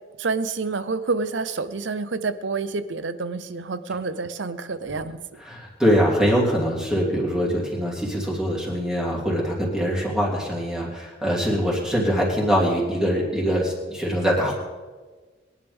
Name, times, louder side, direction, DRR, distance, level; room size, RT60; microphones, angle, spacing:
voice 1, 0.2-5.2, right 4 dB, 80° right, 12 dB, 0.8 m, -28 dB
voice 2, 5.4-14.5, equal, 5° right, -5 dB, 3.1 m, -23 dB
22.5 x 10.5 x 3.6 m, 1.3 s
head